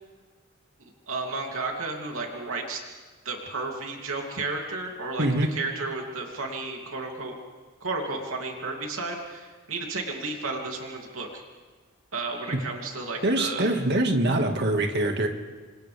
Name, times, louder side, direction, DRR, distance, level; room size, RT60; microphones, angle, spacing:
voice 1, 1.1-2.8 3.2-7.3 7.8-11.4 12.1-13.7, right 3 dB, 80° right, 1 dB, 3.0 m, -33 dB
voice 2, 13.2-15.3, right 1 dB, 55° right, 4 dB, 2.0 m, -24 dB
29.0 x 26.5 x 3.5 m, 1.3 s
head